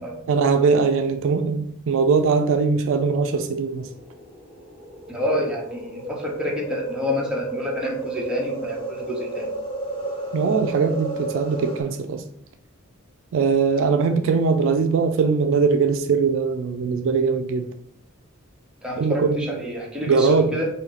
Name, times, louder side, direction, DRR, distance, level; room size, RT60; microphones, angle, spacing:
voice 1, 0.3-3.9 10.3-12.2 13.3-17.7 19.0-19.6 20.1-20.6, right 5 dB, 65° right, 7 dB, 0.3 m, -21 dB
sound 1, 2.7-11.8, right 2 dB, 25° left, 1.2 m, -33 dB
voice 2, 5.1-9.5 18.8-20.7, left 1 dB, 5° right, -3 dB, 0.9 m, -28 dB
4.3 x 2.8 x 3.9 m, 0.72 s
head